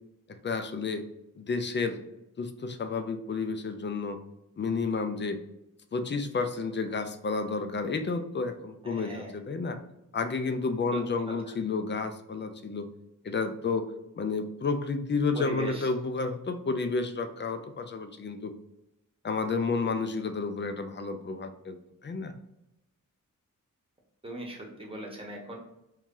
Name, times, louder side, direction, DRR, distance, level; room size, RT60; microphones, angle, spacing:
voice 1, 0.4-1.0 1.4-2.0 2.4-4.2 4.6-5.4 5.9-9.8 10.1-12.9 13.2-18.5 19.2-22.3, left 4 dB, 35° left, 8 dB, 0.4 m, -31 dB
voice 2, 8.8-9.3 10.9-11.0 11.3-11.4 15.3-15.9 24.2-25.6, right 2 dB, 15° right, -1 dB, 1.0 m, -38 dB
3.0 x 2.7 x 3.6 m, 0.87 s
wide cardioid pair, 95°, 32 cm